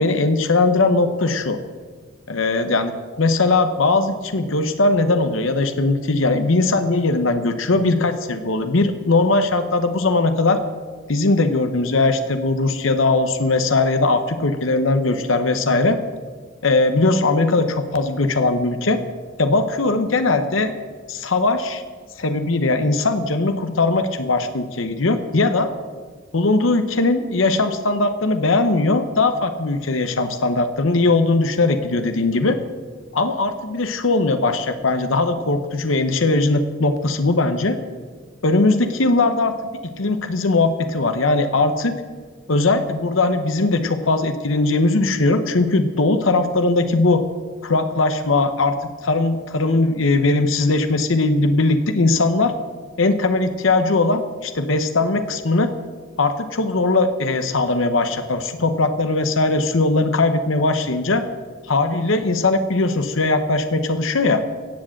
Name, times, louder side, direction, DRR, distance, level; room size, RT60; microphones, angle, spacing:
voice 1, 0.0-1.6 2.3-10.6 11.1-16.0 16.6-19.0 19.4-20.7 21.1-21.8 22.2-25.7 26.3-32.6 33.1-37.8 38.4-39.5 40.0-42.0 42.5-47.2 47.6-48.8 49.0-52.5 53.0-55.7 56.2-61.2 61.7-64.4, left 3 dB, 85° left, 8 dB, 1.0 m, -19 dB
16.0 x 7.6 x 7.7 m, 1.5 s
head